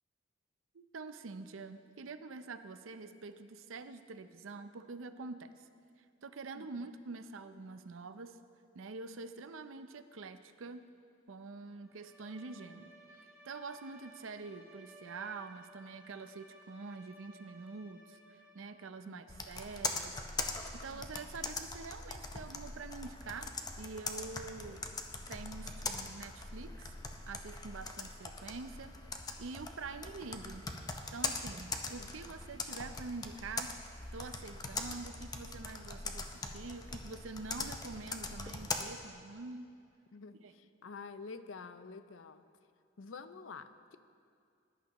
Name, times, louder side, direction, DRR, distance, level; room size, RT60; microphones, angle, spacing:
voice 1, 0.7-5.5 6.2-8.4 8.7-10.8 11.3-12.9 13.2-20.2 20.7-24.8 25.3-26.9 27.3-28.9 29.4-30.7 31.1-33.7 34.1-39.7 40.4-40.5, right 4 dB, 85° right, 10 dB, 0.6 m, -46 dB
voice 2, 6.5-6.9 19.1-19.4 20.9-21.3 32.0-32.1 36.3-36.5 40.1-42.5 43.0-44.0, left 4 dB, 75° left, 12 dB, 0.5 m, -49 dB
Bowed string instrument, 11.8-18.9, right 1 dB, 10° right, 3.1 m, -58 dB
Computer keyboard, 19.3-38.8, left 3 dB, 20° left, 0.7 m, -41 dB
19.5 x 11.0 x 3.0 m, 2.4 s
head